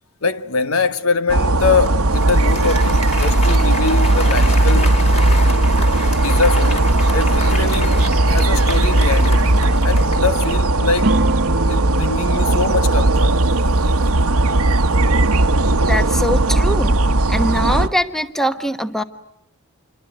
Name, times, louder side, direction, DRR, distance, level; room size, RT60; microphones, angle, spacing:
voice 1, 0.2-4.9 5.3-5.5 6.2-9.5 9.8-11.2 11.7-13.4, left 4 dB, 70° left, 1.4 m, -23 dB
sound 1, 1.3-17.9, right 2 dB, 80° right, 1.2 m, -16 dB
Applause, 1.7-10.7, left 3 dB, 30° left, 4.9 m, -31 dB
sound 2, 11.0-15.9, right 2 dB, 50° right, 1.1 m, -28 dB
voice 2, 15.9-16.9 17.3-19.0, equal, ahead, 1.1 m, -22 dB
28.0 x 23.0 x 9.1 m
head